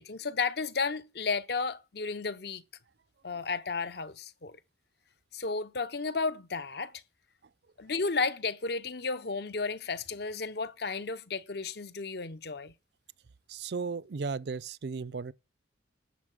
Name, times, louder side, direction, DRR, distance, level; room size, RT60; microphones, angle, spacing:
voice 1, 0.0-2.6 3.2-4.6 5.3-6.9 7.8-12.7, left 4 dB, 55° left, 0.8 m, -33 dB
voice 2, 13.5-15.3, right 4 dB, 60° right, 0.5 m, -35 dB
11.5 x 7.2 x 6.1 m
head